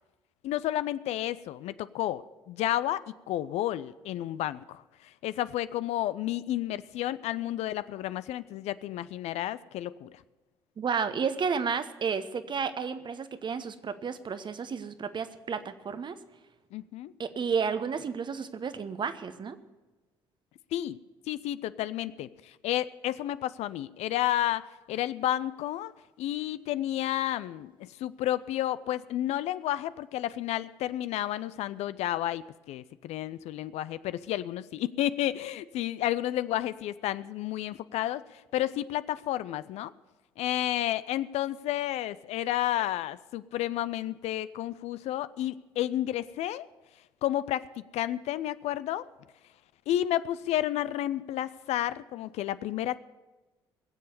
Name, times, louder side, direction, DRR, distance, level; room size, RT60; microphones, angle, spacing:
voice 1, 0.4-10.2 16.7-17.1 20.7-21.0 21.3-25.9 26.2-39.9 40.4-46.7 47.2-49.1 49.9-53.0, left 13 dB, 60° left, 16 dB, 0.5 m, -31 dB
voice 2, 10.8-16.2 17.2-19.6, right 6 dB, 40° right, 11 dB, 1.0 m, -32 dB
20.5 x 7.5 x 6.8 m, 1.1 s
hypercardioid pair, 55°, 13 cm